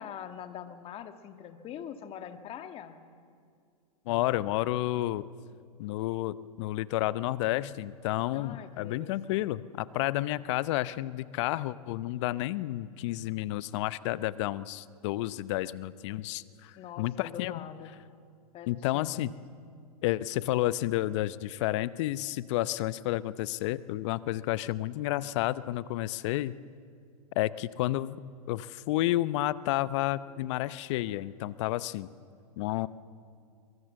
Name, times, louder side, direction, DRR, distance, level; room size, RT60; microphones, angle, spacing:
voice 1, 0.0-3.0 8.3-9.4 16.8-18.0 18.5-19.3, left 9 dB, 30° left, 8 dB, 1.7 m, -43 dB
voice 2, 4.1-5.3 5.8-17.6 18.7-19.3 20.0-26.6 27.4-28.2 28.5-32.1 32.6-32.9, left 16 dB, 50° left, 17 dB, 0.7 m, -31 dB
23.5 x 22.5 x 7.6 m, 2.3 s
hypercardioid pair, 115°, 20 cm